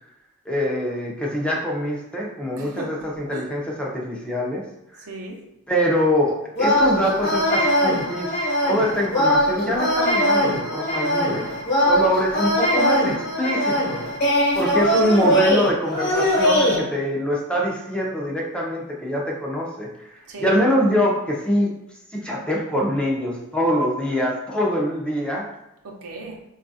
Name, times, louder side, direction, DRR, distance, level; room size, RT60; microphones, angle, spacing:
voice 1, 0.5-4.6 4.9-5.0 5.7-8.3 8.7-11.5 11.8-14.1 14.5-21.7 22.1-25.5, equal, 5° left, -3 dB, 0.5 m, -24 dB
voice 2, 2.6-3.5 5.0-5.5 14.8-15.0 20.3-20.6 25.8-26.4, right 3 dB, 75° right, 0 dB, 0.6 m, -37 dB
sound 1, 6.5-16.8, equal, 50° left, 1.0 m, -21 dB
3.9 x 2.4 x 2.6 m, 0.88 s
head